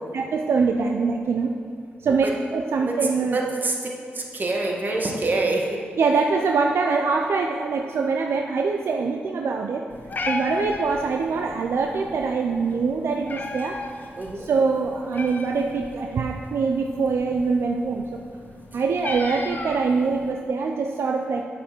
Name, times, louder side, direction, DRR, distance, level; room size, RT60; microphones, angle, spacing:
voice 1, 0.1-1.6 2.0-3.4 6.0-9.9 10.3-13.8 14.3-18.2 18.7-21.5, right 4 dB, 75° right, 3 dB, 0.5 m, -24 dB
voice 2, 3.3-3.7 4.1-5.8 14.2-14.5, right 2 dB, 45° right, 0 dB, 1.7 m, -26 dB
Meow, 9.9-20.3, left 3 dB, 45° left, 1.0 m, -36 dB
7.6 x 7.5 x 6.0 m, 2.4 s
cardioid pair, 60°, 4 cm